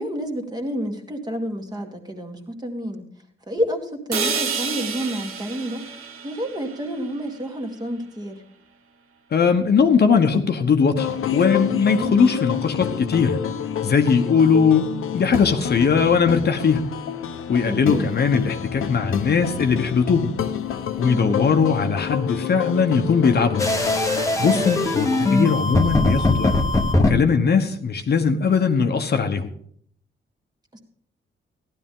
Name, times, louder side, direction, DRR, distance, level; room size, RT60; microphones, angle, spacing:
voice 1, 0.0-3.0 3.5-5.8 6.2-8.4 12.0-12.3 17.6-18.0 21.1-21.5 24.4-24.7 30.7-30.8, equal, 20° right, 3 dB, 1.8 m, -29 dB
sound 1, 4.1-8.1, right 5 dB, 80° right, 1.5 m, -30 dB
voice 2, 9.3-13.4 13.8-16.9 17.5-20.3 21.0-23.7 24.4-26.5 27.0-29.5, left 5 dB, 50° left, 6 dB, 1.1 m, -20 dB
sound 2, 11.0-25.4, left 9 dB, 80° left, 1.0 m, -29 dB
sound 3, 23.6-27.1, left 2 dB, 15° left, 1.1 m, -20 dB
15.0 x 11.5 x 3.8 m, 0.62 s
wide cardioid pair, 150°, 21 cm